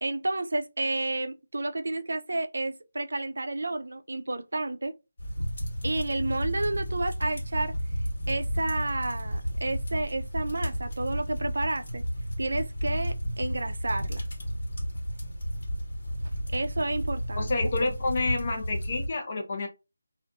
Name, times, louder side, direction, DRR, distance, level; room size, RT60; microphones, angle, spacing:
voice 1, 0.0-4.9 5.8-7.7 8.3-12.0 12.4-14.3 16.5-17.5, right 2 dB, 70° right, 0.3 m, -31 dB
sound 1, 5.2-19.1, equal, 60° left, 1.1 m, -32 dB
voice 2, 17.4-19.7, left 3 dB, 35° left, 0.6 m, -29 dB
2.5 x 2.4 x 2.3 m
figure-of-eight pair, 170°, 0 cm